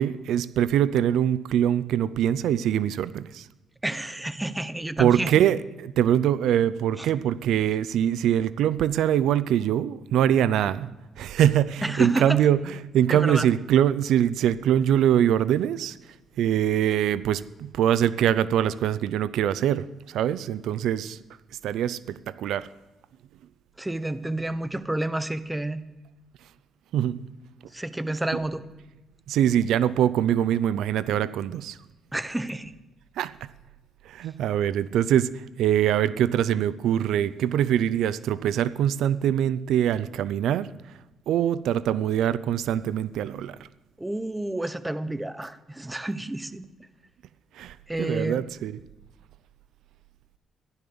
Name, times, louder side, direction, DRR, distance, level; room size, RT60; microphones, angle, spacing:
voice 1, 0.0-3.5 5.0-10.9 11.2-16.0 16.4-21.2 21.6-22.7 26.9-27.2 28.3-28.4 29.3-31.8 33.2-33.5 34.0-40.7 41.3-43.6 47.5-48.8, right 10 dB, 80° right, 17 dB, 0.5 m, -23 dB
voice 2, 3.8-5.3 7.0-7.1 11.8-12.4 13.1-13.5 23.8-25.8 27.7-28.6 32.1-32.7 44.0-46.6 47.9-48.4, right 1 dB, 10° right, 14 dB, 1.0 m, -30 dB
15.0 x 12.0 x 7.0 m, 1.1 s
cardioid pair, 90°, 0 cm